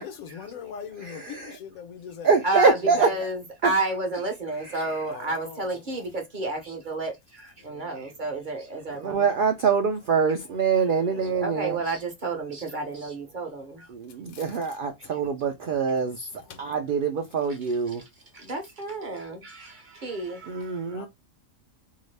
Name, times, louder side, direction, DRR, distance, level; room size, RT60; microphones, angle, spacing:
voice 1, 0.0-2.3 2.8-3.1 5.0-5.9 7.6-8.2 11.0-11.4 14.3-14.5 15.0-15.1 16.4-16.6 20.8-21.1, left 7 dB, 85° left, 1.2 m, -42 dB
voice 2, 1.1-1.5 2.2-3.1 3.6-3.7 8.9-11.8 13.9-16.2 16.6-18.0 20.5-21.1, right 5 dB, 80° right, 0.4 m, -24 dB
voice 3, 2.4-9.3 11.4-13.9 16.2-16.3 18.3-21.1, right 2 dB, 45° right, 0.8 m, -31 dB
2.8 x 2.5 x 3.1 m
omnidirectional pair, 1.4 m